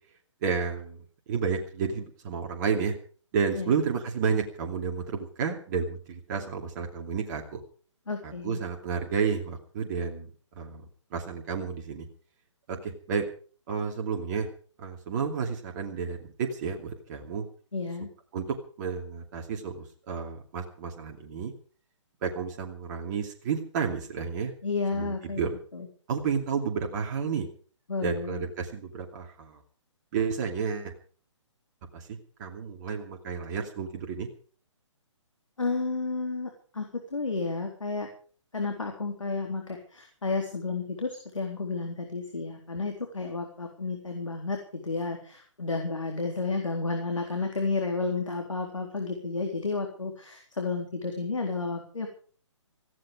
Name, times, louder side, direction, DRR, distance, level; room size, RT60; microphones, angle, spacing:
voice 1, 0.4-3.0 3.3-7.6 8.2-12.1 12.7-13.3 13.7-14.5 14.8-17.5 18.3-21.5 22.2-24.5 24.9-25.6 26.1-27.5 28.0-29.6 30.1-30.9 31.9-32.1 32.4-34.3, right 6 dB, 35° right, 2 dB, 2.6 m, -31 dB
voice 2, 8.1-8.6 17.7-18.1 24.6-25.4 25.7-25.9 27.9-28.4 35.6-38.1 38.5-52.1, left 3 dB, 80° left, 2 dB, 3.9 m, -32 dB
17.0 x 15.0 x 5.1 m, 0.43 s
figure-of-eight pair, 135°, 16 cm